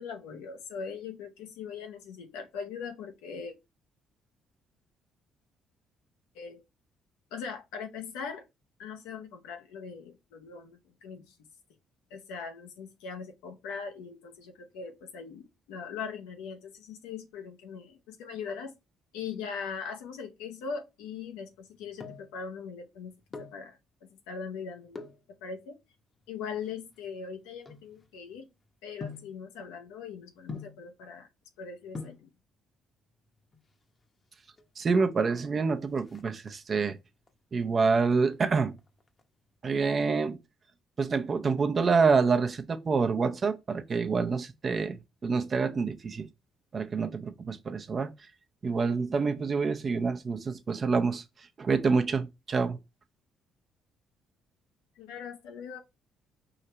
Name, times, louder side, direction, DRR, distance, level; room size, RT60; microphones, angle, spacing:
voice 1, 0.0-3.5 6.3-6.6 7.3-8.5 8.8-11.3 12.1-18.7 19.1-23.1 23.4-25.1 25.4-25.8 26.3-28.5 28.8-31.3 31.6-32.3 55.0-55.8, left 6 dB, 85° left, 0.7 m, -40 dB
sound 1, 21.6-22.4 23.1-23.7 24.9-25.3 26.0-28.4 29.0-29.4 30.5-30.9 31.6-31.7 31.9-32.3 33.4-34.0 34.3-34.4 34.6-34.7 35.1-35.5 35.8-36.8 37.3-37.7 38.1-39.2 39.5-39.6, left 4 dB, 40° left, 0.8 m, -44 dB
voice 2, 34.8-37.0 37.5-38.7 39.6-40.4 41.0-46.3 46.7-48.1 48.6-51.2 51.6-52.8, right 4 dB, 45° right, 0.7 m, -27 dB
4.8 x 2.8 x 3.1 m
supercardioid pair, 60°, 0 cm